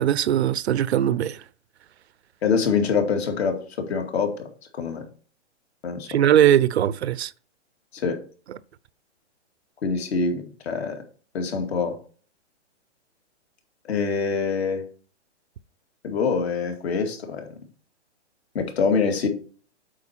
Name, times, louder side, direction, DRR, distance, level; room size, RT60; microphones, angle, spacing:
voice 1, 0.0-1.4 6.1-7.3, right 10 dB, 65° right, 0.6 m, -20 dB
voice 2, 2.4-4.4 4.8-5.0 5.8-6.1 7.9-8.2 9.8-11.0 11.3-12.0 13.9-14.8 16.0-17.4 18.5-19.3, left 5 dB, 60° left, 2.3 m, -25 dB
8.4 x 4.7 x 4.4 m
hypercardioid pair, 160°, 35 cm